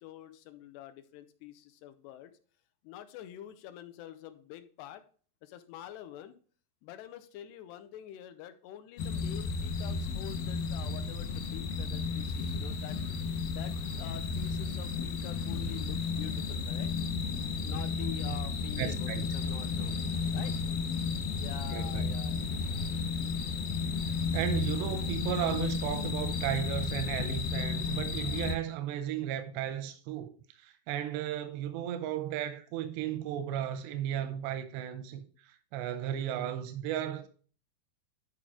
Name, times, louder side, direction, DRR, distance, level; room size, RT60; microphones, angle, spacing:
voice 1, 0.0-2.3 2.8-5.0 5.4-6.3 6.8-13.0 13.6-17.0 17.7-20.0 20.3-20.5 21.4-22.3, left 12 dB, 90° left, 2.8 m, -46 dB
sound 1, 9.0-28.6, left 4 dB, 75° left, 2.5 m, -33 dB
voice 2, 18.8-19.3 21.7-22.2 24.3-37.3, right 11 dB, 90° right, 2.8 m, -35 dB
11.5 x 5.0 x 3.6 m
omnidirectional pair, 4.8 m